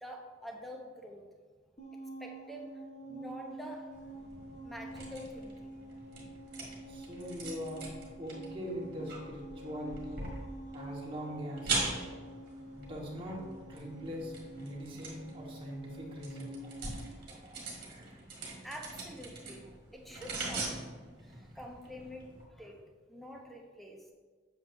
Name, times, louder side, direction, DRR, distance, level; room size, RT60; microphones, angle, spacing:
voice 1, 0.0-1.2 2.2-2.7 3.0-3.9 4.6-5.9 12.8-12.9 18.6-20.7 21.2-22.8 23.1-24.0, equal, ahead, 1 dB, 0.7 m, -47 dB
sound 1, 1.8-17.1, right 2 dB, 35° left, 1.0 m, -47 dB
sound 2, 3.9-22.4, right 3 dB, 45° right, 1.7 m, -43 dB
voice 2, 6.9-7.8 8.2-10.2 10.7-11.9 12.7-13.4 13.7-17.0 17.3-18.2, equal, 25° right, -4 dB, 1.4 m, -42 dB
7.5 x 7.1 x 2.6 m, 1.4 s
head